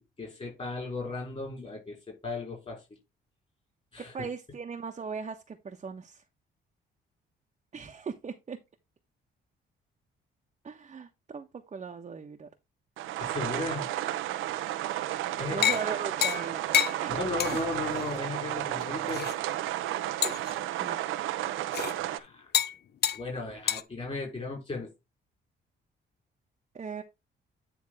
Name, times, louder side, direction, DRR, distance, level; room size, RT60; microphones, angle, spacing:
voice 1, 0.0-2.9 3.9-4.3 13.2-13.9 15.4-15.8 17.1-19.3 22.0-22.5 23.1-24.9, left 3 dB, 30° left, 5.1 m, -36 dB
voice 2, 4.1-6.2 7.7-8.6 10.6-12.5 15.5-16.6 17.0-17.2 20.8-21.0 26.7-27.0, right 5 dB, 35° right, 1.1 m, -38 dB
sound 1, 13.0-22.2, right 13 dB, 90° right, 0.8 m, -32 dB
sound 2, 15.6-15.9 16.2-16.5 16.7-17.0 17.4-17.6 18.0-18.1 18.8-19.3 20.2-20.5 21.7-21.9 22.5-22.8 23.0-23.2 23.7-23.8, left 9 dB, 55° left, 0.7 m, -27 dB
9.7 x 3.5 x 4.8 m
cardioid pair, 90°, 20 cm